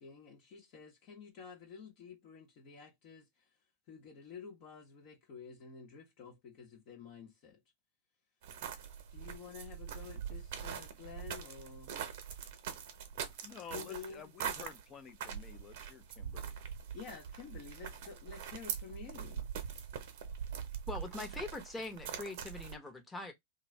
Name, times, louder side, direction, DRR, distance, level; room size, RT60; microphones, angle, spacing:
voice 1, 0.0-3.3 3.9-7.6 9.1-11.9 13.7-14.3 16.9-19.5, left 6 dB, 50° left, 1.0 m, -50 dB
sound 1, 8.4-22.8, right 8 dB, 60° right, 0.8 m, -43 dB
voice 2, 13.4-16.6, left 7 dB, 30° left, 0.6 m, -51 dB
voice 3, 20.9-23.3, left 2 dB, 10° left, 0.9 m, -42 dB
2.5 x 2.2 x 3.3 m
hypercardioid pair, 100°, 0 cm